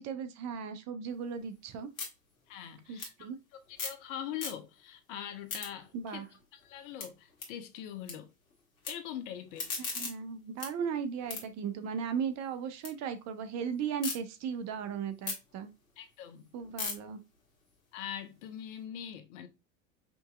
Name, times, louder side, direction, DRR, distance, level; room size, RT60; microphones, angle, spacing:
voice 1, 0.0-1.9 2.9-3.4 5.9-6.2 9.8-15.7 16.5-17.2, right 7 dB, 40° right, 0.7 m, -36 dB
sound 1, 1.1-4.1 4.3-4.9 5.3-8.1 8.4-8.9 9.3-12.9 13.3-14.2 14.6-18.8, left 4 dB, 80° left, 1.5 m, -42 dB
voice 2, 2.5-3.1 3.5-6.2 6.5-8.3 8.9-10.1 16.0-16.5 17.9-19.5, left 10 dB, 60° left, 0.8 m, -42 dB
5.3 x 2.8 x 2.3 m
hypercardioid pair, 80°, 40 cm